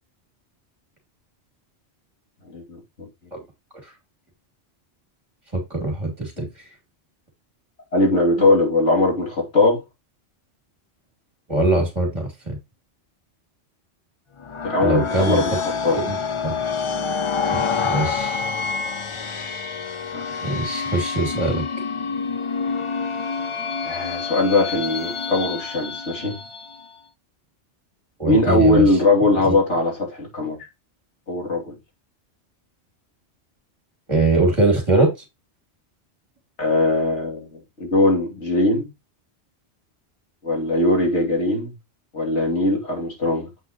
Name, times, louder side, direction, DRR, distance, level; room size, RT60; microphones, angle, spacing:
voice 1, 2.5-2.8 6.4-6.5 7.9-9.8 14.6-15.5 15.8-16.0 20.1-20.2 23.8-26.4 28.3-30.6 31.3-31.8 36.6-38.9 40.4-41.7 42.1-43.5, left 2 dB, 80° left, 3.1 m, -20 dB
voice 2, 5.5-6.5 8.4-8.5 11.5-12.6 14.8-15.4 15.9-16.2 16.4-16.6 17.5-18.4 20.4-21.6 28.2-28.9 29.4-29.5 34.1-35.1, right 2 dB, 25° right, 2.7 m, -22 dB
sound 1, 14.4-26.9, left 5 dB, 35° left, 0.6 m, -27 dB
7.8 x 5.8 x 3.0 m
omnidirectional pair, 1.2 m